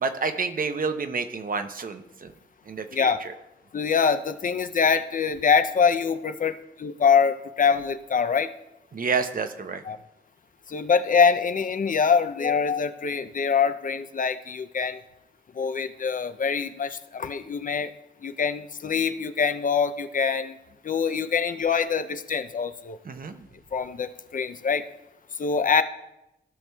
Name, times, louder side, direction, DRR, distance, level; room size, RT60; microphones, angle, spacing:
voice 1, 0.0-2.3 2.7-3.3 8.9-9.8 23.1-23.5, right 4 dB, 50° right, 8 dB, 0.7 m, -29 dB
voice 2, 2.9-3.2 3.7-8.5 9.9-10.0 10.7-15.0 15.6-17.9 18.2-20.6 20.8-23.0 23.7-24.8 25.4-25.8, left 6 dB, 45° left, 10 dB, 0.5 m, -24 dB
15.5 x 5.9 x 2.3 m, 0.88 s
wide cardioid pair, 90°, 19 cm